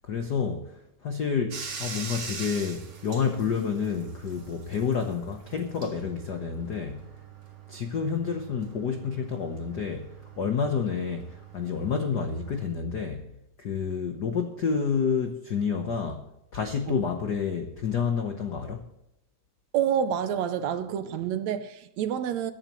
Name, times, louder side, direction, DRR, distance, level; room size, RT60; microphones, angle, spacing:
voice 1, 0.0-7.1 7.7-13.3 13.6-16.2 16.5-18.8, left 6 dB, 80° left, 0.9 m, -29 dB
Bathtub (filling or washing), 1.5-12.7, right 6 dB, 40° right, 2.1 m, -43 dB
voice 2, 19.7-22.5, right 9 dB, 75° right, 1.9 m, -28 dB
22.5 x 11.0 x 3.1 m
omnidirectional pair, 3.4 m